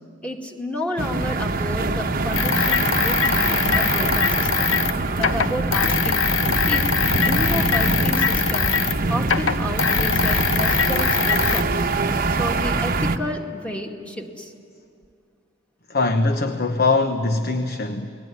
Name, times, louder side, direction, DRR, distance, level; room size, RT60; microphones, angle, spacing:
voice 1, 0.2-4.8 5.2-6.3 6.7-6.9 7.2-8.8 9.1-11.8 12.3-14.5, left 1 dB, 5° left, 1 dB, 2.3 m, -31 dB
sound 1, 1.0-13.2, right 3 dB, 45° right, 1.0 m, -24 dB
sound 2, 2.3-9.0 9.2-11.6, left 7 dB, 90° left, 0.9 m, -22 dB
voice 2, 15.9-18.2, left 3 dB, 55° left, 7 dB, 1.1 m, -22 dB
30.0 x 20.5 x 9.5 m, 2.4 s
head